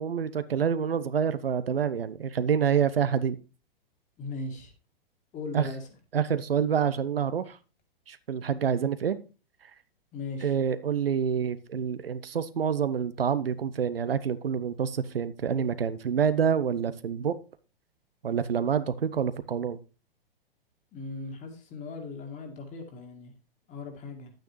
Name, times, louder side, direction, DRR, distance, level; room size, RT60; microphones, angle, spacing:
voice 1, 0.0-3.4 5.5-5.7 6.1-7.6 8.1-9.2 10.4-17.4 18.2-19.8, right 7 dB, 75° right, 13 dB, 0.8 m, -27 dB
voice 2, 4.2-4.7 5.3-5.8 10.1-10.5 20.9-23.3 23.7-24.3, left 3 dB, 25° left, 5 dB, 2.0 m, -38 dB
9.9 x 9.0 x 3.1 m, 0.32 s
figure-of-eight pair, 110°, 29 cm